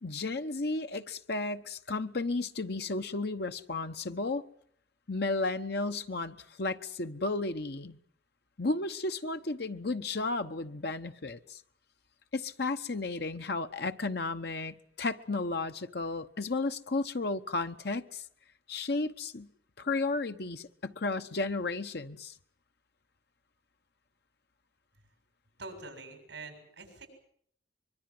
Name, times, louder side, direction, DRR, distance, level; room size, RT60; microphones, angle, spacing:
voice 1, 0.0-4.4 5.1-8.0 8.6-11.6 12.3-18.2 18.7-19.5 19.8-22.3, left 3 dB, 60° left, 1.1 m, -33 dB
voice 2, 25.6-27.1, right 3 dB, 70° right, 7.1 m, -45 dB
24.0 x 23.0 x 7.8 m
head